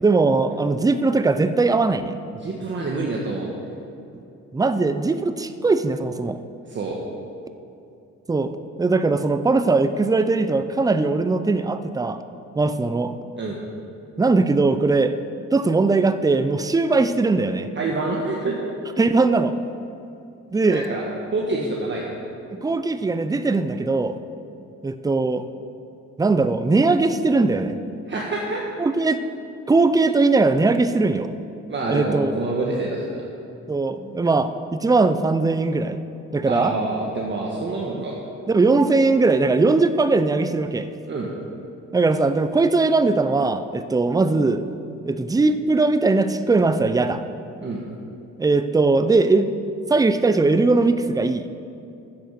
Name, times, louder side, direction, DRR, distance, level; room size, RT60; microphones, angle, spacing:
voice 1, 0.0-2.2 4.5-6.4 8.3-8.5 8.8-12.2 12.6-13.2 14.2-15.2 15.5-17.7 19.0-19.5 20.5-20.9 22.6-24.2 24.8-25.5 26.2-27.8 28.8-29.2 29.7-31.3 31.9-32.3 33.7-36.0 36.3-36.8 38.5-40.9 41.9-44.6 45.1-47.2 48.4-49.6 49.9-51.5, right 3 dB, 10° right, 10 dB, 0.5 m, -20 dB
voice 2, 2.3-3.5 6.7-7.0 13.3-13.6 17.7-18.6 20.7-21.0 21.3-22.2 28.1-28.6 31.7-33.2 36.5-38.2 41.1-41.3 47.6-47.8, right 3 dB, 40° right, -3 dB, 1.4 m, -26 dB
10.5 x 7.9 x 6.6 m, 2.7 s
cardioid pair, 90°, 30 cm